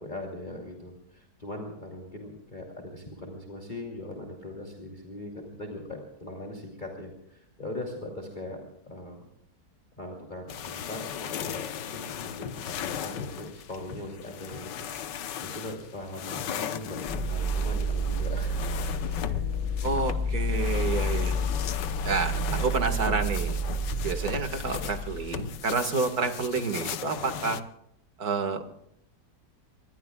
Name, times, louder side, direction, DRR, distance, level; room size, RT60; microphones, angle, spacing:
voice 1, 0.0-8.6 8.8-9.2 10.0-18.7 19.0-19.4 19.8-20.0, left 1 dB, 25° left, 0 dB, 3.0 m, -40 dB
sound 1, 10.5-27.6, left 9 dB, 85° left, 1.6 m, -37 dB
sound 2, 17.1-25.8, equal, 10° left, 3.6 m, -30 dB
voice 2, 19.8-21.4 22.0-23.6 24.0-27.6 28.2-28.6, right 4 dB, 60° right, 7 dB, 2.3 m, -29 dB
27.0 x 22.5 x 2.4 m, 0.77 s
omnidirectional pair, 1.8 m